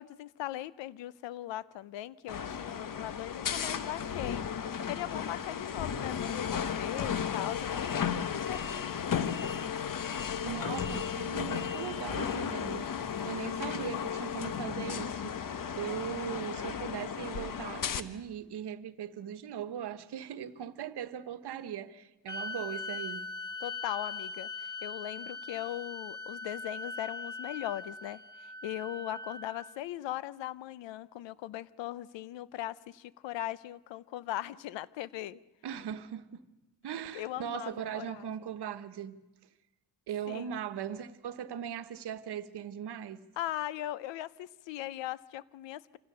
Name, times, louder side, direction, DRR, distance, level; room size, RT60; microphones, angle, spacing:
voice 1, 0.0-4.4 4.9-9.1 23.6-35.4 36.9-38.3 40.3-40.5 43.4-46.0, left 14 dB, 90° left, 0.7 m, -39 dB
sound 1, 2.3-18.0, left 7 dB, 50° left, 1.1 m, -34 dB
voice 2, 10.4-23.3 35.6-36.4 36.8-39.2 40.1-43.2, right 9 dB, 65° right, 1.2 m, -39 dB
sound 2, 22.3-29.8, left 3 dB, 10° left, 1.5 m, -41 dB
26.0 x 16.0 x 6.8 m
cardioid pair, 70°, 43 cm